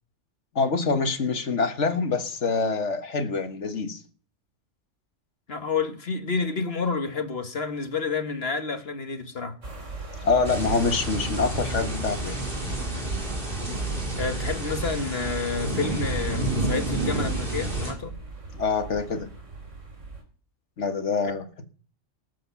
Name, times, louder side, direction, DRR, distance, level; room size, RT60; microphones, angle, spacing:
voice 1, 0.5-4.0 10.2-12.4 18.5-19.3 20.8-21.5, left 4 dB, 70° left, 1.7 m, -25 dB
voice 2, 5.5-9.6 13.7-18.1, left 5 dB, 55° left, 1.7 m, -30 dB
sound 1, 9.6-20.2, right 2 dB, 80° right, 4.0 m, -37 dB
sound 2, 10.4-17.9, right 2 dB, 45° right, 4.3 m, -30 dB
19.0 x 7.4 x 7.0 m
omnidirectional pair, 1.3 m